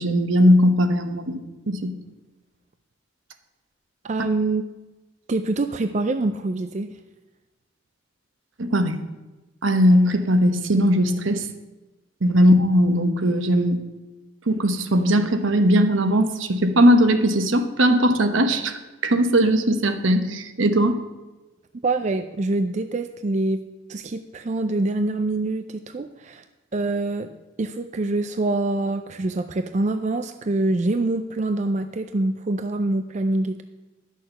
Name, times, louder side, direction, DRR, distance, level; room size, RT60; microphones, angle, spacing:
voice 1, 0.0-1.3 1.7-1.9 8.6-8.9 9.6-11.4 12.2-13.8 14.5-18.8 19.0-21.0, equal, 75° right, 8 dB, 1.0 m, -19 dB
voice 2, 4.0-4.6 5.3-7.0 21.8-23.6 23.9-26.4 26.7-27.3 27.6-33.6, right 2 dB, 35° right, 8 dB, 0.4 m, -25 dB
11.0 x 6.5 x 6.7 m, 1.1 s
head